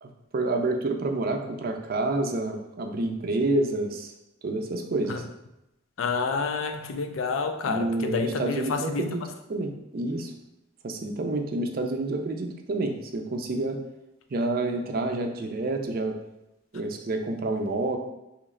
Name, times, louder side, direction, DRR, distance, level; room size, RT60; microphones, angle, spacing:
voice 1, 0.0-4.1 4.4-5.2 7.6-9.2 9.5-10.3 10.8-13.8 14.3-16.2 16.7-18.0, right 2 dB, 50° right, 4 dB, 0.4 m, -28 dB
voice 2, 6.0-9.2, left 4 dB, 85° left, 6 dB, 0.4 m, -29 dB
3.1 x 2.9 x 3.7 m, 0.91 s
head